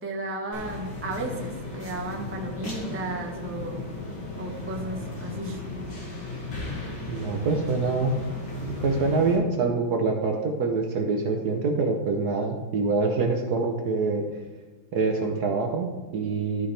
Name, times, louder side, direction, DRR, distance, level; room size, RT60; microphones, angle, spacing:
voice 1, 0.0-3.8 4.4-5.6, right 2 dB, 10° right, 0 dB, 0.5 m, -34 dB
sound 1, 0.5-9.4, left 3 dB, 55° left, 2.8 m, -36 dB
voice 2, 7.1-8.1 8.6-14.2 14.9-16.7, right 4 dB, 60° right, 3 dB, 1.1 m, -25 dB
12.5 x 5.8 x 3.3 m, 1.3 s
omnidirectional pair, 2.3 m